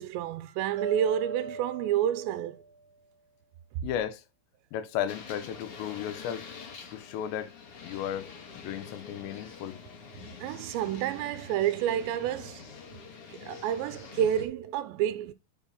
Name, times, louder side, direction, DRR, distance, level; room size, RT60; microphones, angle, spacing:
voice 1, 0.0-2.6 10.4-12.6 13.3-15.3, right 10 dB, 85° right, 2.9 m, -29 dB
Mallet percussion, 0.8-2.8, right 2 dB, 40° right, 2.2 m, -40 dB
voice 2, 3.8-4.2 4.7-6.5 6.9-7.5 7.8-9.8, left 10 dB, 80° left, 3.0 m, -34 dB
sound 1, 5.1-14.5, left 5 dB, 60° left, 1.4 m, -46 dB
9.1 x 4.7 x 3.8 m
omnidirectional pair, 5.1 m